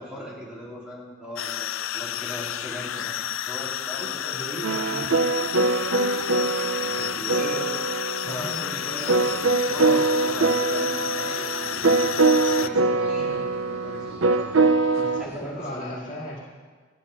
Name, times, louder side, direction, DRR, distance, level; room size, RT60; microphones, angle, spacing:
voice 1, 0.0-1.7 1.9-4.5 4.8-5.0 6.7-7.7 8.2-14.7 15.2-16.0, equal, 5° right, -7 dB, 3.3 m, -39 dB
sound 1, 1.4-12.7, left 11 dB, 80° left, 0.4 m, -31 dB
voice 2, 3.9-5.1 8.2-8.8 15.0-16.4, equal, 40° left, -4 dB, 2.3 m, -37 dB
sound 2, 4.6-15.2, right 3 dB, 75° right, 0.6 m, -23 dB
sound 3, 9.7-15.4, equal, 30° right, 3.0 m, -48 dB
13.5 x 8.8 x 5.5 m, 1.4 s
head